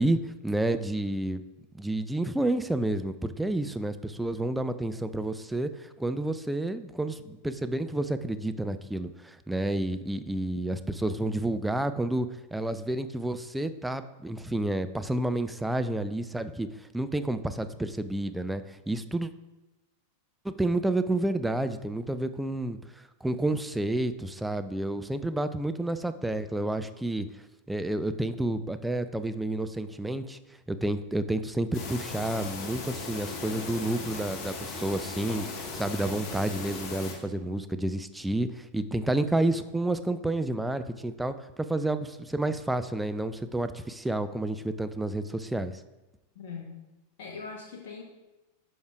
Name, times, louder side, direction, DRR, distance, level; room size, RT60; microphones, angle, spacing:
voice 1, 0.0-1.4 1.7-16.7 16.9-19.3 20.4-22.8 23.2-27.3 27.7-30.4 30.7-41.3 41.7-45.7, right 1 dB, 5° right, 10 dB, 0.4 m, -30 dB
sound 1, 31.7-37.1, left 3 dB, 35° left, 1.3 m, -37 dB
voice 2, 46.3-46.8 47.2-48.0, left 5 dB, 50° left, -1 dB, 1.0 m, -41 dB
10.0 x 6.3 x 2.4 m, 1.0 s
figure-of-eight pair, 90°, 0 cm